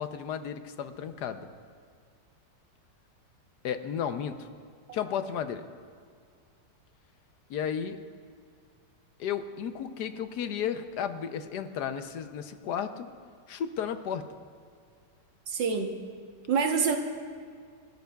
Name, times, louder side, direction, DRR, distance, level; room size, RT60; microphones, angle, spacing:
voice 1, 0.0-1.5 3.6-4.5 4.9-5.6 7.5-8.0 9.2-13.1 13.5-14.3, left 8 dB, 70° left, 9 dB, 1.2 m, -33 dB
voice 2, 15.5-16.0 16.5-17.0, right 6 dB, 85° right, 4 dB, 1.8 m, -26 dB
30.0 x 13.0 x 2.3 m, 2.1 s
omnidirectional pair, 1.9 m